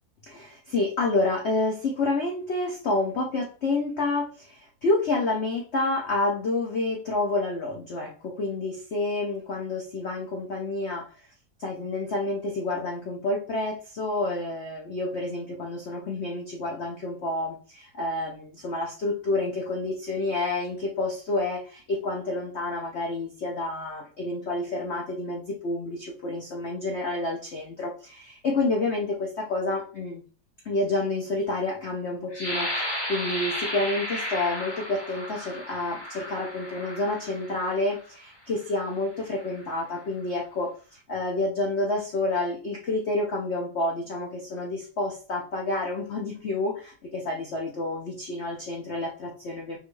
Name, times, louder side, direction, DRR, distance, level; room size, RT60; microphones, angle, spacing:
voice 1, 0.3-11.1 11.6-30.2 30.6-49.8, left 2 dB, 70° left, 0 dB, 0.6 m, -29 dB
sound 1, 32.3-38.0 38.6-38.8 39.3-39.7, left 1 dB, 25° left, 0.5 m, -34 dB
6.0 x 2.4 x 3.1 m, 0.38 s
omnidirectional pair, 2.1 m